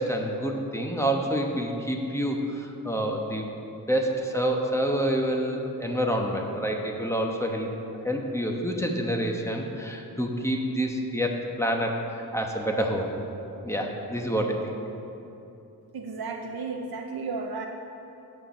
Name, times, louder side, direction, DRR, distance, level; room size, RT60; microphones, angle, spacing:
voice 1, 0.0-7.7 8.0-12.0 12.3-13.1 13.6-14.7, equal, 5° left, 1 dB, 1.0 m, -28 dB
voice 2, 15.9-17.7, right 4 dB, 70° right, 2 dB, 0.6 m, -33 dB
7.5 x 6.6 x 6.3 m, 2.9 s
wide cardioid pair, 55°, 38 cm